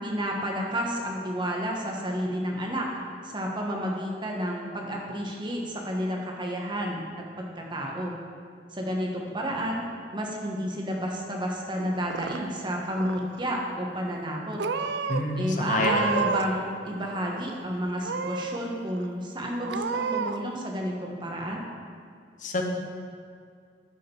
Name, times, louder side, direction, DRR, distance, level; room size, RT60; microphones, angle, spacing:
voice 1, 0.0-2.9 3.2-8.1 8.7-9.8 10.1-14.6 15.4-21.6, equal, 25° right, -1 dB, 1.3 m, -31 dB
Purr / Meow, 11.8-12.7 12.9-13.5 14.2-14.3 14.6-15.2 15.7-16.6 16.9-17.6 18.0-18.6 19.0-19.1 19.6-20.4, right 5 dB, 75° right, 0.5 m, -31 dB
voice 2, 15.1-16.2 22.4-22.7, left 2 dB, 45° left, 2 dB, 1.1 m, -28 dB
11.5 x 5.1 x 5.5 m, 2.2 s
head